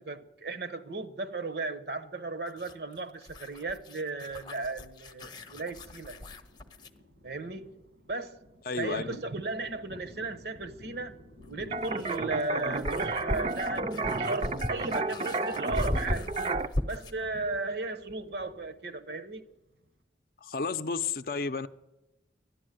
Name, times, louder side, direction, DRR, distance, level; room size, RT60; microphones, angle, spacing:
voice 1, 0.0-6.2 7.2-7.8 8.1-8.4 8.8-11.1 11.5-16.3 16.9-19.4, right 3 dB, 65° right, 0.9 m, -36 dB
sound 1, 2.5-7.0 9.3-9.4 11.4-17.2, left 1 dB, 25° left, 0.7 m, -37 dB
Thunder, 5.2-20.0, left 1 dB, 85° right, 2.1 m, -53 dB
voice 2, 8.7-9.0 20.4-21.7, left 4 dB, 55° left, 0.5 m, -31 dB
sound 2, 11.7-16.7, right 3 dB, 35° right, 0.5 m, -32 dB
12.0 x 11.5 x 9.0 m
head